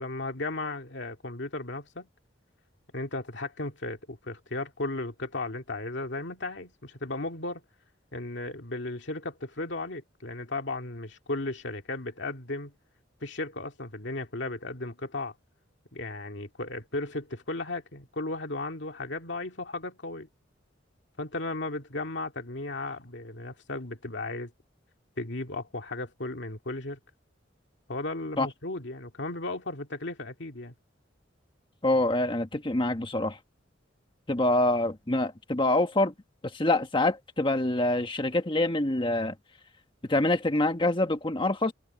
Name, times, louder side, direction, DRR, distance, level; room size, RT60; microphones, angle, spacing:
voice 1, 0.0-2.1 2.9-7.6 8.1-12.7 13.2-15.3 15.9-20.3 21.2-24.5 25.2-27.0 27.9-30.7, left 2 dB, 65° left, 2.3 m, -35 dB
voice 2, 31.8-33.4 34.3-36.1 36.5-39.3 40.1-41.7, left 2 dB, 25° left, 1.5 m, -25 dB
head